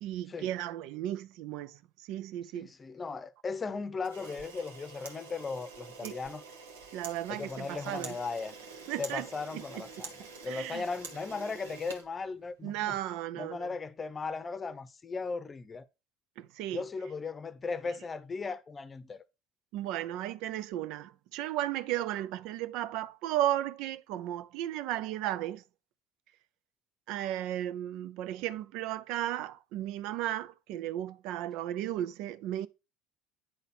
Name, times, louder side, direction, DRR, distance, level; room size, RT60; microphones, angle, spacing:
voice 1, 0.0-1.8 2.1-2.7 6.0-6.2 6.9-8.2 8.9-9.3 9.5-10.1 10.5-10.8 12.6-13.7 16.4-16.8 19.7-25.6 27.1-32.7, right 13 dB, 60° right, 0.5 m, -35 dB
voice 2, 2.5-6.4 7.3-8.5 9.0-13.0 13.3-15.9 16.7-19.2, left 4 dB, 25° left, 0.8 m, -37 dB
Camera, 4.0-12.7, right 4 dB, 80° right, 1.2 m, -47 dB
9.4 x 4.1 x 4.2 m
hypercardioid pair, 70°, 0 cm